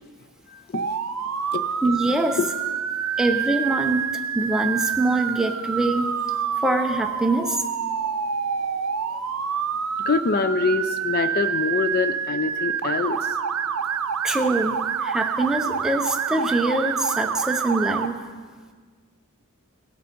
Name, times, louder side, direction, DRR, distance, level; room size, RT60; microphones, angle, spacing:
voice 1, 0.5-0.9 1.5-1.6 10.1-13.2, left 4 dB, 45° left, 11 dB, 0.4 m, -24 dB
Motor vehicle (road) / Siren, 0.7-18.1, right 7 dB, 80° right, 0.7 m, -27 dB
voice 2, 1.8-2.4 3.2-6.1 6.6-7.6 14.2-18.2, right 2 dB, 5° right, 4 dB, 0.6 m, -24 dB
17.0 x 6.7 x 5.3 m, 1.5 s
head